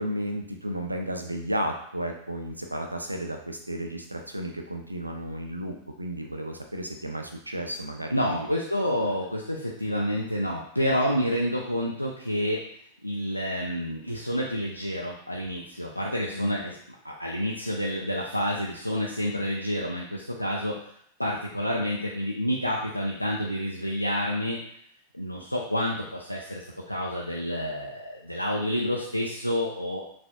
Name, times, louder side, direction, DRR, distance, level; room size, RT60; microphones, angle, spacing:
voice 1, 0.0-8.5 9.0-9.1 16.3-16.6, equal, 85° right, 3 dB, 0.5 m, -33 dB
voice 2, 8.1-12.7 13.0-16.8 17.0-20.8 21.2-24.6 25.1-30.0, equal, 90° left, -3 dB, 0.4 m, -29 dB
5.8 x 2.5 x 2.2 m, 0.68 s
figure-of-eight pair, 90°, 0 cm